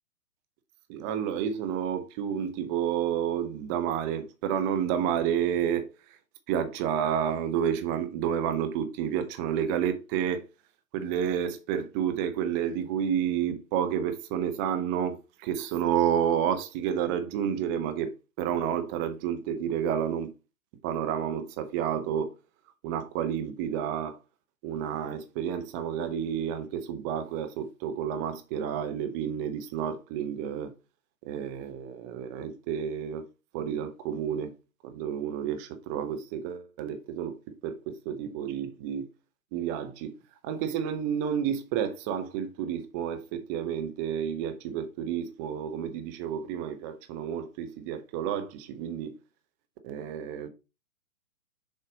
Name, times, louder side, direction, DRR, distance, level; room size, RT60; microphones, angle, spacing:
voice 1, 0.9-5.9 6.5-10.4 10.9-18.1 18.4-20.3 20.8-22.3 22.8-24.2 24.6-30.7 31.2-33.2 33.5-34.5 34.8-37.3 37.6-39.1 39.5-40.1 40.4-49.1 49.8-50.5, right 9 dB, 15° right, 0.5 m, -30 dB
6.8 x 4.0 x 4.9 m
figure-of-eight pair, 125°, 42 cm